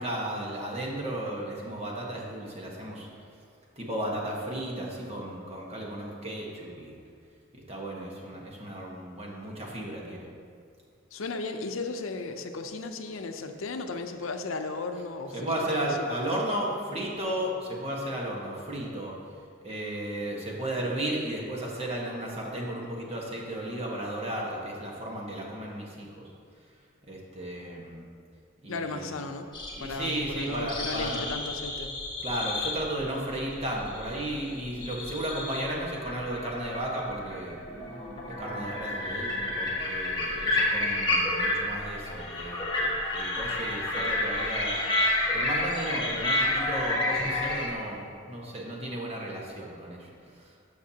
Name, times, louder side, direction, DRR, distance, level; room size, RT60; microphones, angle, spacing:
voice 1, 0.0-3.1 3.8-6.9 7.5-10.3 15.3-19.1 19.6-26.2 27.1-28.1 28.6-29.2 29.7-31.2 32.2-37.6 38.3-44.8 45.3-50.7, right 1 dB, 30° right, -2 dB, 1.3 m, -34 dB
voice 2, 11.1-16.4 28.7-29.5 29.8-31.9, left 3 dB, 90° left, 7 dB, 0.6 m, -35 dB
sound 1, 29.5-47.7, left 1 dB, 25° left, 1.2 m, -30 dB
12.5 x 6.7 x 2.8 m, 2.2 s
head